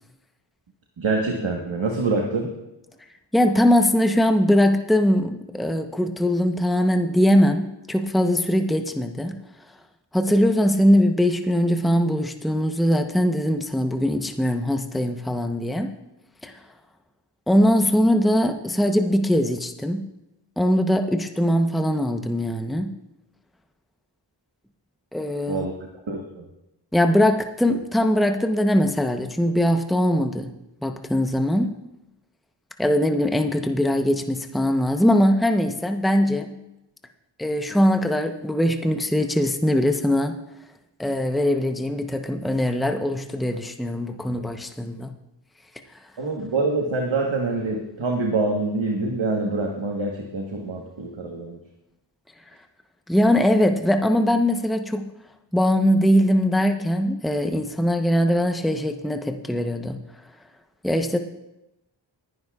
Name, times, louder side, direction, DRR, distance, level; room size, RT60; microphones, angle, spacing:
voice 1, 1.0-2.5 25.5-25.7 26.1-26.5 46.2-51.6, right 3 dB, 80° right, 0 dB, 1.4 m, -25 dB
voice 2, 3.3-9.4 10.1-15.9 16.4-16.5 17.5-20.1 20.6-23.0 25.1-25.7 26.9-30.5 30.8-31.8 32.8-36.6 37.4-40.4 41.0-45.1 53.1-55.1 55.5-60.0 60.8-61.2, equal, ahead, 5 dB, 0.8 m, -21 dB
21.0 x 11.0 x 2.4 m, 0.91 s
wide cardioid pair, 45°, 45 cm